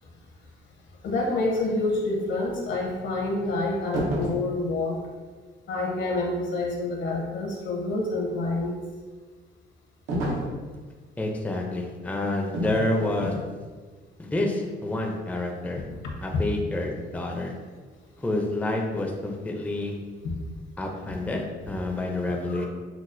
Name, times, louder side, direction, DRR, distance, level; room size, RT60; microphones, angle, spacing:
voice 1, 1.0-5.0 5.7-8.7 20.2-20.3 22.5-22.7, left 2 dB, 70° left, -1 dB, 0.9 m, -27 dB
sound 1, 3.9-4.5 10.1-10.6 12.5-12.9 13.2-13.5, equal, 85° right, 0.8 m, -28 dB
voice 2, 11.2-13.3 14.2-15.8 16.2-17.5 18.2-19.9 20.8-22.7, left 2 dB, 5° left, 1 dB, 0.4 m, -28 dB
5.9 x 2.0 x 2.5 m, 1.4 s
cardioid pair, 90°, 20 cm